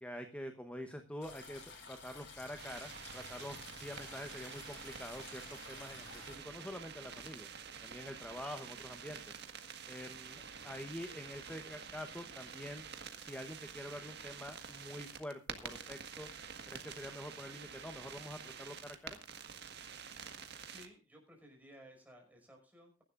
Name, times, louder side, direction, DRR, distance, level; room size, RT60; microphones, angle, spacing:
voice 1, 0.0-7.5 7.8-9.4 9.9-12.8 13.2-16.3 16.7-19.2, left 1 dB, 5° left, 7 dB, 1.0 m, -46 dB
sound 1, 1.2-6.4, left 4 dB, 65° left, 5.8 m, -52 dB
sound 2, 2.6-20.9, right 7 dB, 60° right, 1.7 m, -48 dB
voice 2, 20.3-23.0, equal, 10° right, 1 dB, 5.6 m, -58 dB
22.5 x 11.5 x 2.5 m, 0.32 s
head